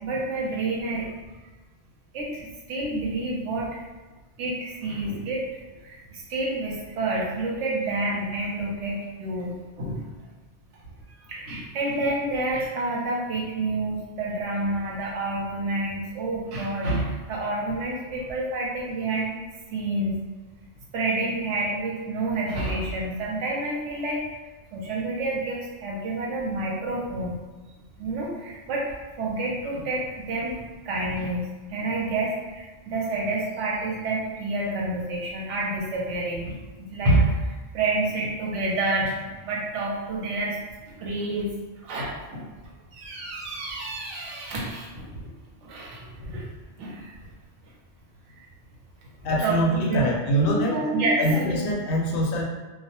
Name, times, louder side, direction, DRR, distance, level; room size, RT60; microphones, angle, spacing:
voice 1, 0.0-1.1 2.1-3.8 4.4-5.4 5.8-10.1 11.1-19.3 19.7-20.2 20.9-24.2 24.7-27.4 28.0-40.6 40.8-41.5 41.8-45.3 45.6-46.5 46.8-47.1 48.3-48.4 49.4-51.6, right 2 dB, 85° right, -3 dB, 1.0 m, -28 dB
voice 2, 49.2-50.8 51.2-52.4, equal, 60° left, -1 dB, 0.7 m, -24 dB
2.2 x 2.0 x 2.8 m, 1.3 s
omnidirectional pair, 1.2 m